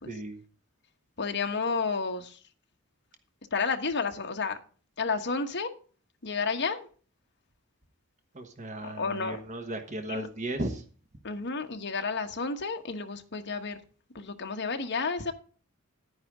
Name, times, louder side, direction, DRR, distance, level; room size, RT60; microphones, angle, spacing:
voice 1, 0.0-0.4 8.3-10.8, right 1 dB, 35° right, 6 dB, 1.2 m, -36 dB
voice 2, 1.2-2.4 3.5-4.6 5.0-5.7 6.2-6.9 8.8-9.4 10.1-10.3 11.2-13.8 14.1-15.3, left 4 dB, 50° left, 5 dB, 1.3 m, -31 dB
10.5 x 9.5 x 3.7 m, 0.40 s
head